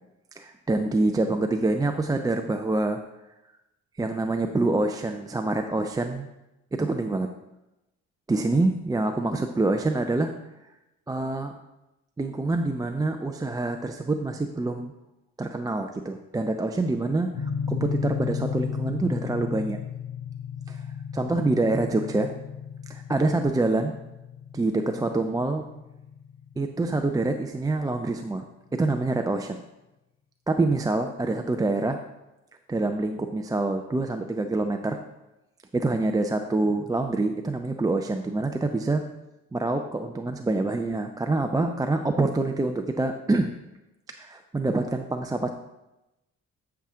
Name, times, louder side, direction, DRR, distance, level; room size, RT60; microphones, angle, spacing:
voice 1, 0.4-3.0 4.0-6.3 6.8-7.3 8.3-10.3 11.1-11.5 12.2-14.9 15.4-19.8 20.7-20.8 21.1-22.3 22.9-24.0 24.5-25.7 26.6-28.4 28.7-29.6 30.5-32.0 32.7-35.0 35.7-39.0 39.5-43.5 44.2-45.5, right 2 dB, 10° right, 5 dB, 0.4 m, -26 dB
sound 1, 17.3-27.5, left 7 dB, 60° left, 0.8 m, -35 dB
8.6 x 5.7 x 3.6 m, 0.96 s
cardioid pair, 90°, 30 cm